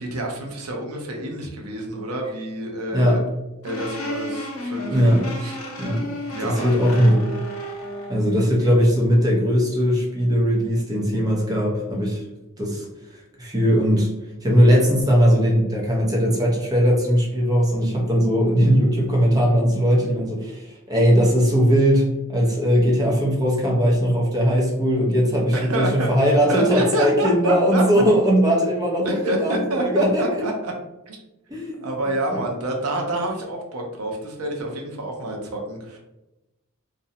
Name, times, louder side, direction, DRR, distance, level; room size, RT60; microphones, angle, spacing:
voice 1, 0.0-3.2 3.6-5.0 5.4-5.6 6.3-6.8 25.5-26.1 26.5-27.8 29.0-30.7 31.1-31.2 31.8-36.0, right 1 dB, 85° right, 1 dB, 0.6 m, -27 dB
sound 1, 3.6-8.2, equal, 80° left, 0.6 m, -32 dB
voice 2, 4.9-5.3 5.8-6.0 6.4-7.3 8.1-12.2 12.6-14.1 14.4-30.3 31.5-31.9 32.3-32.4, equal, 20° right, -3 dB, 0.5 m, -19 dB
2.5 x 2.0 x 2.7 m, 0.97 s
head